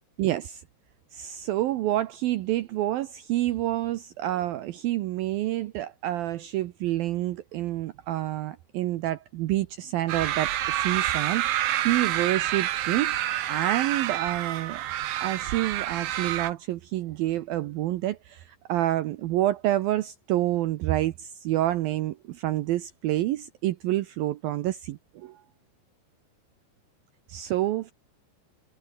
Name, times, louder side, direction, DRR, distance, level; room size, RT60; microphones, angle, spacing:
voice 1, 0.2-0.6 1.1-14.8 15.2-25.4 27.3-27.9, right 14 dB, 80° right, 2.1 m, -28 dB
sound 1, 10.1-16.5, right 13 dB, 65° right, 2.7 m, -28 dB
omnidirectional pair, 5.2 m